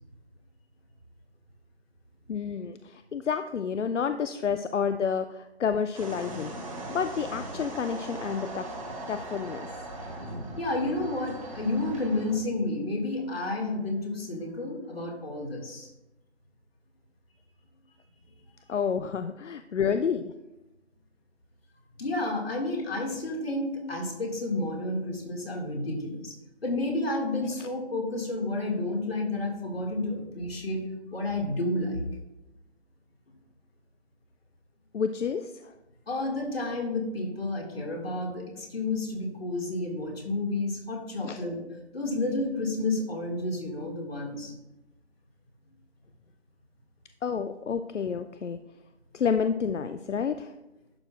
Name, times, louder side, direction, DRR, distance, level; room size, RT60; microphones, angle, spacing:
voice 1, 2.3-6.6 6.9-8.8 9.1-9.7 18.7-20.3 27.6-27.7 34.9-35.7 41.2-41.4 47.2-48.6 49.1-50.5, left 6 dB, 80° left, 10 dB, 0.5 m, -29 dB
sound 1, 5.9-12.3, right 1 dB, 30° right, 1.3 m, -39 dB
voice 2, 10.6-15.9 22.0-26.3 26.6-30.8 31.1-32.0 36.1-41.6 41.9-44.5, left 2 dB, 55° left, 1 dB, 2.1 m, -30 dB
11.0 x 6.1 x 2.4 m, 0.95 s
figure-of-eight pair, 160°, 36 cm